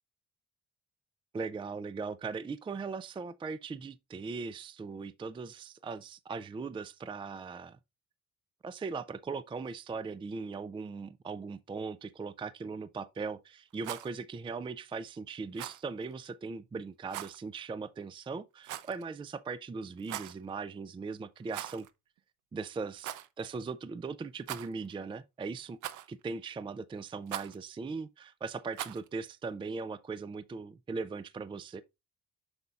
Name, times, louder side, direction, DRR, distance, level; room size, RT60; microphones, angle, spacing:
voice 1, 1.3-7.8 8.6-21.9 22.5-25.8 26.1-31.8, right 4 dB, 15° right, 0.4 m, -39 dB
Rattle, 13.7-14.1 15.5-15.8 17.1-17.4 18.6-19.0 20.0-20.4 21.5-21.9 22.2-22.3 23.0-23.3 24.4-24.9 25.8-26.2 27.3-27.6 28.7-29.1, right 13 dB, 85° right, 0.6 m, -40 dB
7.8 x 5.6 x 2.4 m
cardioid pair, 90°, 30 cm